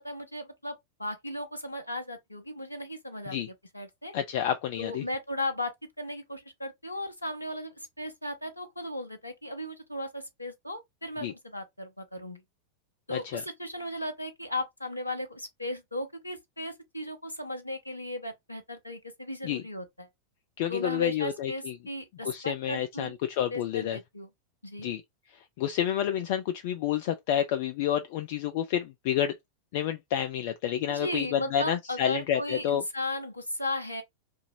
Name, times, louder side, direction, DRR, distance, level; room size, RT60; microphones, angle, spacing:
voice 1, 0.0-4.1 4.8-12.4 13.1-20.1 20.7-23.1 23.5-24.3 24.6-24.9 30.9-34.0, left 1 dB, 85° left, 0.6 m, -36 dB
voice 2, 4.1-5.0 11.2-11.3 13.1-13.4 19.4-19.6 20.6-21.7 22.2-24.0 24.8-25.0 25.6-29.3 29.7-32.8, left 10 dB, 50° left, 0.3 m, -29 dB
2.7 x 2.5 x 2.7 m
figure-of-eight pair, 90°, 0 cm